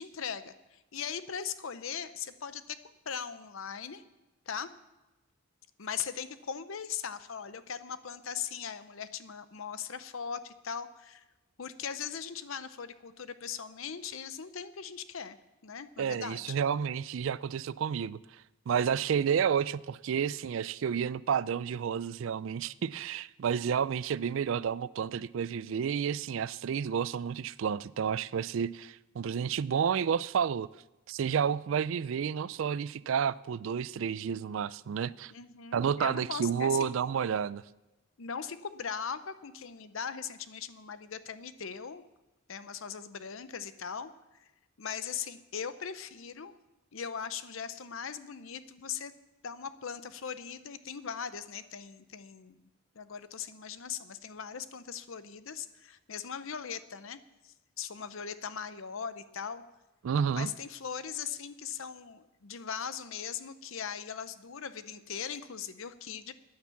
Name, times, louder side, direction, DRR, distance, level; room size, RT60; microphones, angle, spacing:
voice 1, 0.0-2.8 3.1-4.0 4.5-4.7 5.8-11.2 11.6-15.4 15.6-16.6 35.3-36.9 38.2-42.0 42.5-44.1 44.4-44.5 44.8-46.5 46.9-49.1 49.4-52.6 52.9-57.2 57.4-59.6 60.3-66.3, left 7 dB, 70° left, 0.7 m, -39 dB
voice 2, 16.0-18.2 18.7-30.7 31.1-35.3 35.7-37.6 60.0-60.5, right 7 dB, 65° right, 0.3 m, -30 dB
10.0 x 9.6 x 7.2 m
head